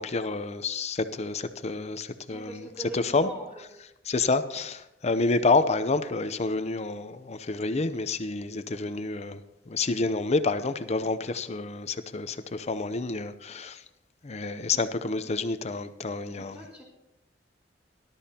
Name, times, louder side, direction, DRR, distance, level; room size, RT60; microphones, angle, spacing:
voice 1, 0.0-2.6 2.9-3.3 4.1-13.8 14.2-16.6, left 3 dB, 35° left, 0.6 m, -28 dB
voice 2, 2.3-3.8 14.7-14.8 15.2-15.4 16.3-16.8, right 1 dB, 5° right, 4.1 m, -43 dB
18.5 x 12.0 x 2.9 m
head